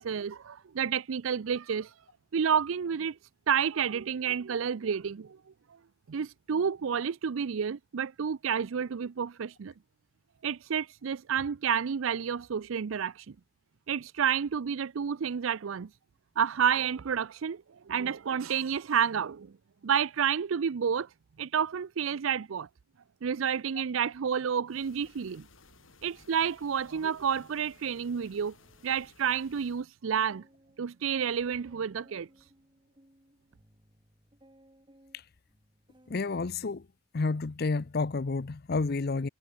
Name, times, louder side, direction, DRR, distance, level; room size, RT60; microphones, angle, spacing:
voice 1, 0.0-1.9 2.3-3.2 3.5-5.4 6.1-9.7 10.4-13.3 13.9-15.9 16.4-19.5 19.8-21.1 21.4-22.7 23.2-25.5 26.0-28.5 28.8-30.4 30.8-32.3, right 7 dB, 75° right, 0.5 m, -30 dB
sound 1, 24.7-29.9, left 3 dB, 75° left, 5.1 m, -59 dB
sound 2, 27.2-29.6 29.9-30.0 30.3-36.3 36.6-37.1, right 1 dB, 25° right, 4.4 m, -63 dB
voice 2, 36.1-36.9 37.1-39.3, left 3 dB, 50° left, 0.6 m, -30 dB
head